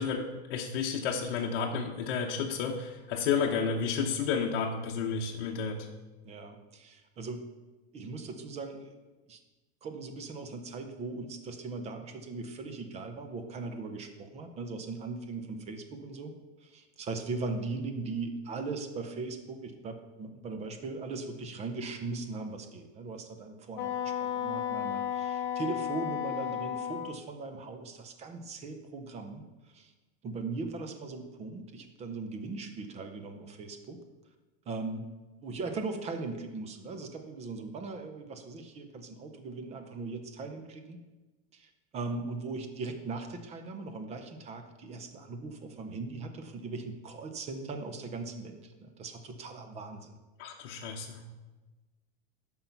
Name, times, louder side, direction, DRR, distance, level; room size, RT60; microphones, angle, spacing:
voice 1, 0.0-5.9 50.4-51.2, left 6 dB, 60° left, 0 dB, 1.0 m, -31 dB
voice 2, 6.2-7.4 7.9-9.0 9.3-9.4 9.8-16.4 16.6-29.9 30.2-34.0 34.7-35.1 35.4-41.0 41.5-50.2, right 3 dB, 20° right, 7 dB, 0.7 m, -39 dB
Wind instrument woodwind instrument, 23.8-27.2, left 9 dB, 35° left, 1.0 m, -33 dB
8.8 x 5.6 x 5.6 m, 1.2 s
supercardioid pair, 160°, 34 cm